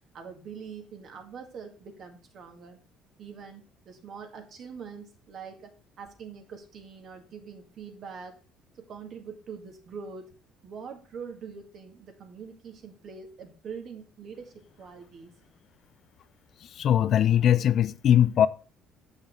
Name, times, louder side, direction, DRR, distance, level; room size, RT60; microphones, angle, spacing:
voice 1, 0.1-2.8 3.2-8.4 8.8-10.3 10.6-15.3, right 6 dB, 55° right, 2.0 m, -43 dB
voice 2, 16.7-18.5, left 10 dB, 55° left, 0.4 m, -21 dB
7.1 x 5.7 x 4.4 m
supercardioid pair, 80°, 0 cm